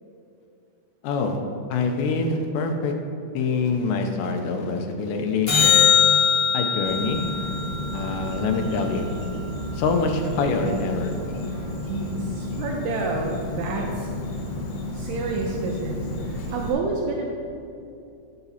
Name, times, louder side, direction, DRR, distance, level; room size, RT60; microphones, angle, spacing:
voice 1, 1.0-1.4 1.7-2.9 3.3-5.7 6.5-7.2 7.9-9.1 9.7-11.2, left 4 dB, 85° left, 4 dB, 2.2 m, -25 dB
sound 1, 5.5-9.9 16.5-16.6, left 7 dB, 50° left, 0.6 m, -23 dB
Insect, 6.9-16.7, left 1 dB, 70° left, 2.4 m, -32 dB
voice 2, 11.8-14.1 14.9-17.3, right 3 dB, 80° right, 0 dB, 1.7 m, -29 dB
8.8 x 7.0 x 2.8 m, 2.7 s
omnidirectional pair, 3.7 m